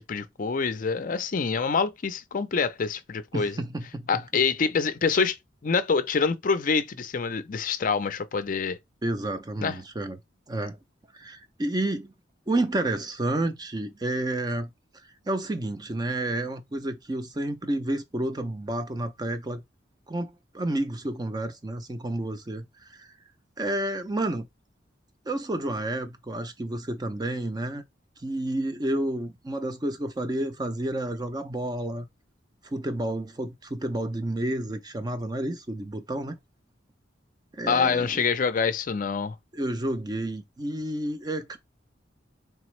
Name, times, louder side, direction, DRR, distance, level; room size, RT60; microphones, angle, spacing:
voice 1, 0.0-3.6 4.1-5.4 5.6-8.8 9.6-9.8 37.7-39.3, left 5 dB, 45° left, 0.4 m, -26 dB
voice 2, 3.3-4.4 9.0-10.2 10.5-10.8 11.1-12.1 12.5-14.7 15.3-19.6 20.1-23.1 23.6-24.5 25.3-27.8 28.2-32.1 32.6-36.4 37.5-38.2 39.5-41.6, right 1 dB, 20° right, 0.5 m, -30 dB
3.9 x 3.3 x 3.2 m
head